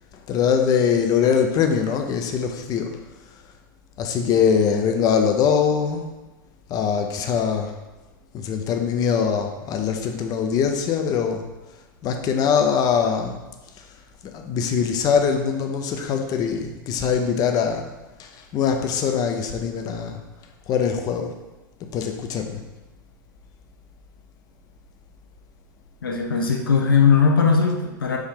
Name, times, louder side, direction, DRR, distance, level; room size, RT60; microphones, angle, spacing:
voice 1, 0.3-3.0 4.0-6.1 6.7-7.7 8.3-11.4 12.0-13.4 14.2-17.9 18.2-20.2 20.7-21.3 21.9-22.6, left 7 dB, 35° left, 4 dB, 0.5 m, -22 dB
voice 2, 26.0-28.2, left 5 dB, 90° left, 1 dB, 0.6 m, -19 dB
4.6 x 2.7 x 3.6 m, 1.1 s
hypercardioid pair, 105°, 11 cm